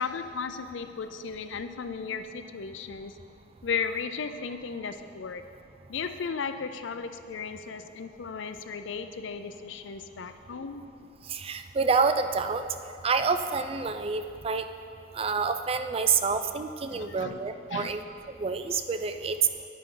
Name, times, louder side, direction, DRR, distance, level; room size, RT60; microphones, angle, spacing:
voice 1, 0.0-3.2 3.6-5.4 5.9-10.9 16.9-17.4 17.7-17.9, left 5 dB, 80° left, 9 dB, 0.5 m, -35 dB
voice 2, 11.3-12.6 13.0-14.6 15.1-18.0 18.4-19.4, right 5 dB, 30° right, 9 dB, 0.4 m, -28 dB
10.0 x 9.3 x 3.9 m, 2.6 s
head